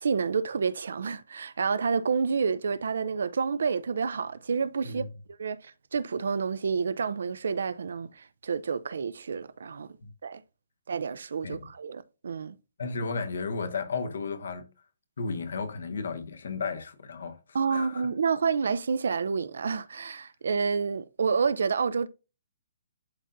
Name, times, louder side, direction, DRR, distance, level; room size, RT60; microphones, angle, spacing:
voice 1, 0.0-5.0 5.4-10.0 10.2-10.4 10.9-12.5 17.5-22.1, right 5 dB, 70° right, 0.5 m, -29 dB
voice 2, 12.8-14.7 15.2-17.4 17.7-18.0, left 4 dB, 70° left, 1.1 m, -33 dB
11.0 x 3.8 x 2.7 m
hypercardioid pair, 180°, 0 cm